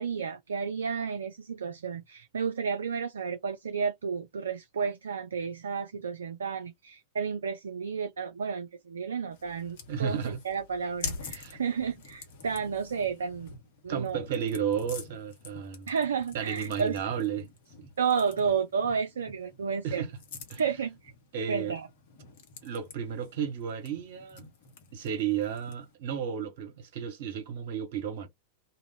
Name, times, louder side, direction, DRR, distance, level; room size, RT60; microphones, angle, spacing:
voice 1, 0.0-13.5 13.8-14.2 15.9-17.0 18.0-20.1 20.6-21.0 21.5-21.9, right 6 dB, 70° right, 0.4 m, -31 dB
sound 1, 9.3-25.9, left 4 dB, 50° left, 1.1 m, -46 dB
voice 2, 9.9-10.4 11.3-11.6 13.9-15.9 16.3-17.5 17.8-17.9 19.8-20.1 20.5-20.6 21.3-21.8 22.6-24.5 24.9-28.3, right 8 dB, 55° right, 1.1 m, -33 dB
2.4 x 2.4 x 3.5 m
figure-of-eight pair, 90°, 0 cm